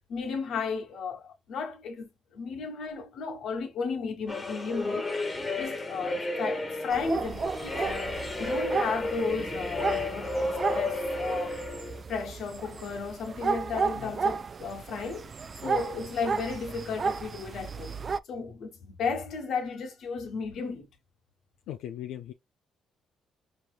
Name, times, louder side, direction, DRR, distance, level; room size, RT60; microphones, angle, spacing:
voice 1, 0.1-5.1 5.6-8.1 8.4-11.6 12.1-15.3 15.6-18.0 18.3-20.9, left 5 dB, 70° left, 1.2 m, -34 dB
sound 1, 4.3-12.0, left 2 dB, 25° left, 1.1 m, -32 dB
sound 2, 6.9-18.2, right 5 dB, 40° right, 0.3 m, -33 dB
voice 2, 21.7-22.3, left 11 dB, 90° left, 0.4 m, -39 dB
4.8 x 2.9 x 2.3 m
cardioid pair, 90°, 0 cm